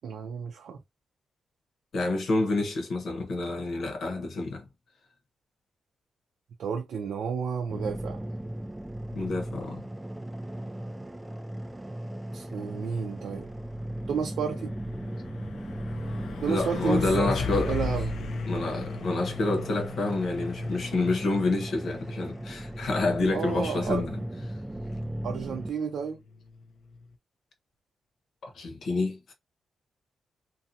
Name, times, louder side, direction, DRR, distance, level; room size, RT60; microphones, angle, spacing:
voice 1, 0.0-0.8 6.6-8.2 12.3-13.5 14.1-14.7 16.4-18.1 23.3-24.1 25.2-26.2, right 6 dB, 75° right, 0.4 m, -31 dB
voice 2, 1.9-4.7 9.1-9.9 16.5-17.8 18.5-24.2 28.4-29.3, left 2 dB, 65° left, 1.0 m, -28 dB
sound 1, 7.7-25.7, right 1 dB, 10° right, 0.3 m, -37 dB
Truck, 12.8-27.1, left 4 dB, 80° left, 0.5 m, -38 dB
2.6 x 2.3 x 2.7 m
wide cardioid pair, 135°, 0 cm